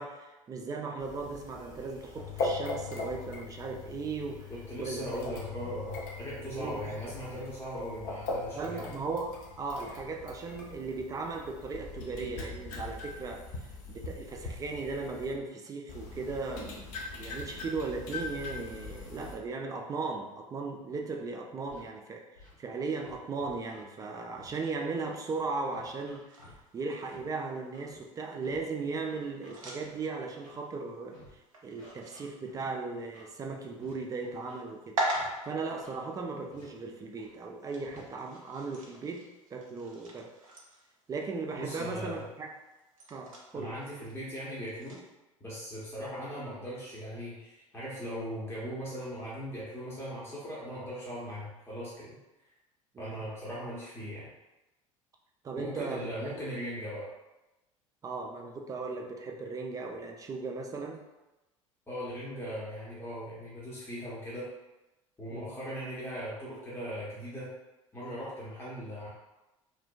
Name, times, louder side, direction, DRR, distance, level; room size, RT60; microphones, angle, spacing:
voice 1, 0.0-4.5 4.8-5.2 6.4-7.0 8.5-13.5 13.9-22.3 22.6-35.0 35.4-39.2 39.5-40.3 41.1-42.5 43.1-43.8 52.9-53.1 55.4-56.3 58.0-61.0 65.3-65.6, right 4 dB, 20° right, 2 dB, 0.3 m, -37 dB
sound 1, 1.0-15.3 15.9-19.4, left 3 dB, 50° left, 0.5 m, -40 dB
voice 2, 4.5-8.9 41.6-42.2 43.5-45.0 45.4-52.2 53.0-54.3 55.5-57.1 61.9-64.5 65.2-67.5 67.9-69.1, equal, 15° left, -8 dB, 0.8 m, -39 dB
Scratching (performance technique), 21.7-21.8 22.3-22.5 23.0-23.8 24.4-24.5 25.0-25.2 25.7-26.6 27.1-27.2 27.7-28.0 28.4-28.6 29.1-29.9 30.4-30.6 31.1-31.3 31.8-32.6 33.1-33.3 33.8-33.9 34.2-34.6 35.1-35.3 35.7-35.9 36.5-36.6 37.2-37.3 37.8-38.0, left 1 dB, 75° left, 0.9 m, -55 dB
sound 2, 26.3-45.1, right 1 dB, 80° right, 0.5 m, -43 dB
2.6 x 2.1 x 2.2 m, 1.0 s
figure-of-eight pair, 70°, 17 cm